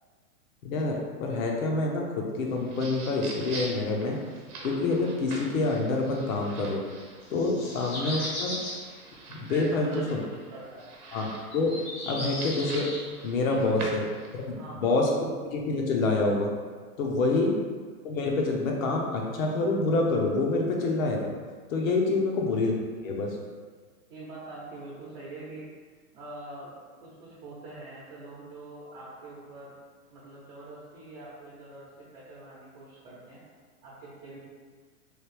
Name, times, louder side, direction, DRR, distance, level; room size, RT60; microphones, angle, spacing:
voice 1, 0.6-4.2 4.6-6.8 7.3-8.5 9.3-10.2 11.1-11.8 12.1-12.9 13.2-14.0 14.3-16.5 17.0-17.5 18.0-21.3 21.7-22.7 23.0-23.4, left 3 dB, 60° left, 0 dB, 0.8 m, -27 dB
sound 1, 2.5-14.5, right 2 dB, 75° right, 0.9 m, -44 dB
sound 2, 7.2-8.8 9.5-9.6 11.5-13.0, left 1 dB, 20° left, 0.4 m, -36 dB
voice 2, 9.5-10.9 13.5-13.9 14.5-15.1 22.1-22.2 24.1-25.6 26.1-26.7 27.0-29.7 30.1-33.4 33.8-34.4, right 2 dB, 45° right, -7 dB, 0.8 m, -44 dB
3.1 x 2.3 x 3.3 m, 1.5 s
hypercardioid pair, 140°, 45 cm